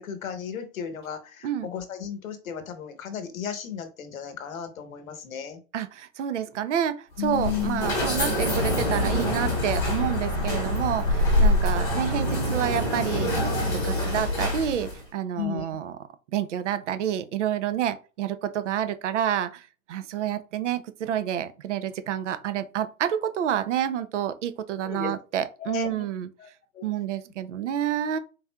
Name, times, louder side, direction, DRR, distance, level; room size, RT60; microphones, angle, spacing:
voice 1, 0.0-5.6 7.2-7.9 15.3-15.7 24.8-25.1 25.6-26.1 26.4-26.5 26.7-26.9, left 8 dB, 70° left, 1.1 m, -34 dB
voice 2, 5.7-15.9 16.3-26.3 26.8-28.2, right 10 dB, 60° right, 0.6 m, -29 dB
sound 1, 7.2-15.0, left 1 dB, 5° left, 0.9 m, -25 dB
4.1 x 3.7 x 2.2 m
hypercardioid pair, 170°, 42 cm